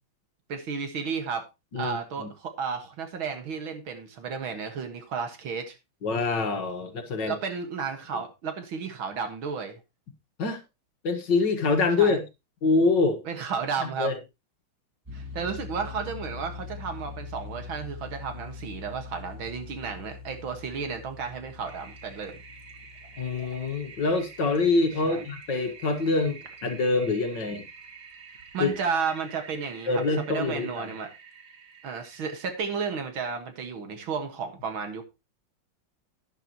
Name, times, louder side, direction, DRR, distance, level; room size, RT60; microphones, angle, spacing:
voice 1, 0.5-1.4 1.8-5.8 7.2-9.8 12.0-12.2 13.3-14.1 15.1-22.4 25.0-25.2 28.5-30.0 30.3-31.1 31.8-35.0, right 5 dB, 70° right, 2.4 m, -33 dB
voice 2, 1.7-2.3 6.0-7.4 10.4-10.6 11.0-12.2 12.6-13.2 13.8-14.2 23.2-27.6 28.6-28.7 29.9-30.9, left 3 dB, 55° left, 2.1 m, -25 dB
sound 1, 15.0-25.9, left 5 dB, 10° right, 2.3 m, -43 dB
Toilet flush, 21.6-33.2, right 5 dB, 50° right, 2.1 m, -48 dB
11.5 x 10.0 x 2.9 m
omnidirectional pair, 2.3 m